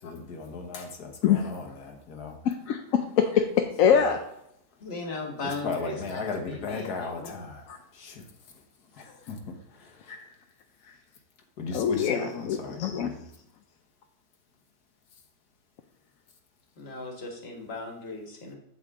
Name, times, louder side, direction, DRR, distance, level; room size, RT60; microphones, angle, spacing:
voice 1, 0.0-2.4 3.8-4.0 5.4-8.2 8.9-10.2 11.6-13.2, left 4 dB, 90° left, 3 dB, 1.7 m, -37 dB
voice 2, 2.4-4.2 7.7-7.8 10.1-10.2 10.9-11.0 11.7-13.1, left 8 dB, 70° left, 5 dB, 1.0 m, -24 dB
voice 3, 4.8-7.3 16.8-18.6, left 3 dB, 40° left, 1 dB, 1.8 m, -37 dB
8.0 x 7.9 x 3.7 m, 0.76 s
omnidirectional pair, 1.6 m